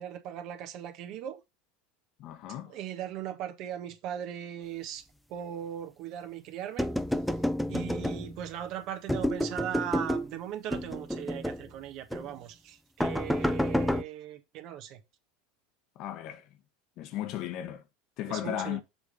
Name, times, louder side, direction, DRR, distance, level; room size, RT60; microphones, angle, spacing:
voice 1, 0.0-1.4 2.7-5.0 5.3-6.9 7.7-15.0 18.3-18.8, right 10 dB, 55° right, 1.3 m, -38 dB
voice 2, 2.2-2.7 16.0-16.5 17.0-17.8 18.2-18.8, left 11 dB, 55° left, 1.0 m, -35 dB
sound 1, 6.8-8.5 9.1-10.3 10.7-11.7 12.1-12.3 13.0-14.0, equal, ahead, 0.6 m, -29 dB
7.1 x 3.4 x 5.3 m
hypercardioid pair, 100°, 0 cm